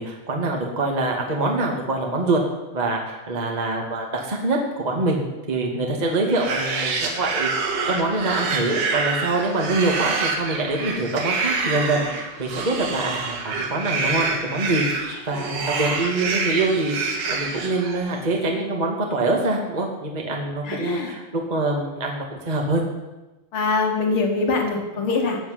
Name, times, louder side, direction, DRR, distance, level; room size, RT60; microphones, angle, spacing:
voice 1, 0.0-2.4 2.7-5.2 5.5-22.8, right 2 dB, 35° right, 0 dB, 0.6 m, -25 dB
sound 1, 6.2-18.2, right 4 dB, 60° right, 3.6 m, -27 dB
voice 2, 20.6-21.2 23.5-25.4, left 3 dB, 40° left, 2 dB, 2.1 m, -23 dB
16.5 x 6.6 x 9.7 m, 1.0 s
omnidirectional pair, 5.3 m